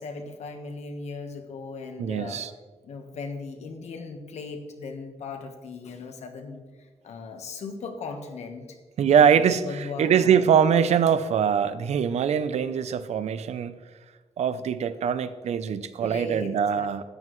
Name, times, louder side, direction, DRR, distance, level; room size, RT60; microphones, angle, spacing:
voice 1, 0.0-2.4 2.8-8.8 9.2-10.4 16.0-16.9, left 4 dB, 85° left, 5 dB, 1.3 m, -38 dB
voice 2, 2.0-2.5 9.0-9.6 10.0-13.8 14.4-17.0, right 7 dB, 85° right, 13 dB, 0.6 m, -22 dB
13.0 x 9.4 x 3.2 m, 1.4 s
wide cardioid pair, 165°, 11 cm